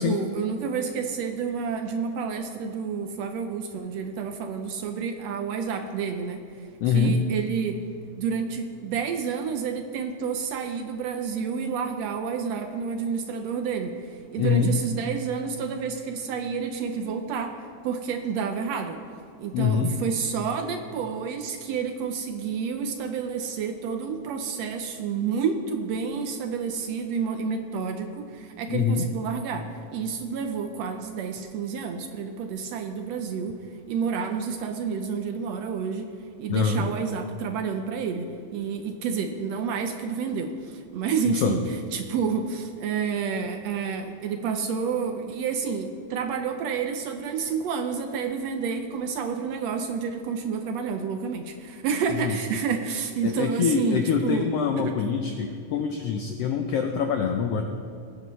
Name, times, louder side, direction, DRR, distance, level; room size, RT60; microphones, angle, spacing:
voice 1, 0.0-7.8 8.2-17.6 17.8-19.0 19.4-33.6 33.9-36.1 36.4-54.5 54.8-54.9, right 6 dB, 75° right, 6 dB, 1.6 m, -29 dB
voice 2, 6.8-7.1 14.4-14.7 19.5-19.9 28.7-29.0 36.5-36.8 41.3-41.5 52.1-52.3 53.2-57.6, left 6 dB, 85° left, 5 dB, 1.3 m, -24 dB
20.0 x 10.0 x 3.1 m, 2.4 s
omnidirectional pair, 3.5 m